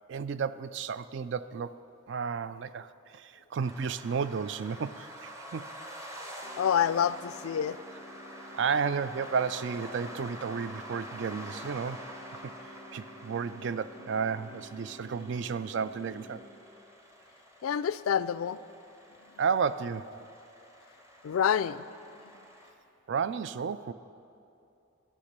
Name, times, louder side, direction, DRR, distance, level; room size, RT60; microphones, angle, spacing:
voice 1, 0.1-1.8 2.1-5.7 8.5-12.1 12.4-12.5 12.9-16.4 19.4-20.1 23.1-23.9, right 6 dB, 60° right, 14 dB, 0.3 m, -32 dB
sound 1, 3.6-22.7, equal, 15° right, 0.8 m, -47 dB
sound 2, 6.4-16.4, equal, 45° right, 1.3 m, -51 dB
voice 2, 6.6-7.8 17.6-18.6 21.2-21.8, left 8 dB, 90° left, 16 dB, 0.3 m, -27 dB
11.5 x 8.6 x 6.7 m, 2.7 s
head